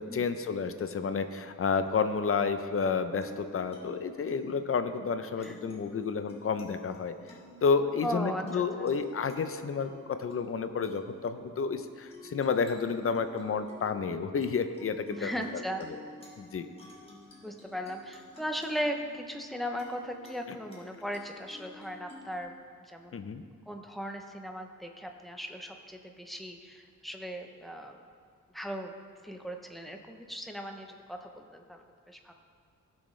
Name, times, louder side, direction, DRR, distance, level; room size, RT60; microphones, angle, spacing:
voice 1, 0.0-7.1 7.6-15.3 16.4-16.7 20.5-20.6 23.1-23.4, left 5 dB, 45° left, 9 dB, 0.5 m, -30 dB
sound 1, 2.7-22.4, left 1 dB, 20° left, 1.5 m, -52 dB
voice 2, 8.0-8.9 15.1-15.9 17.4-22.5 22.9-23.2 23.7-28.0 28.5-28.9 29.2-32.3, equal, ahead, 3 dB, 0.6 m, -38 dB
16.0 x 6.3 x 3.2 m, 2.2 s
wide cardioid pair, 160°, 32 cm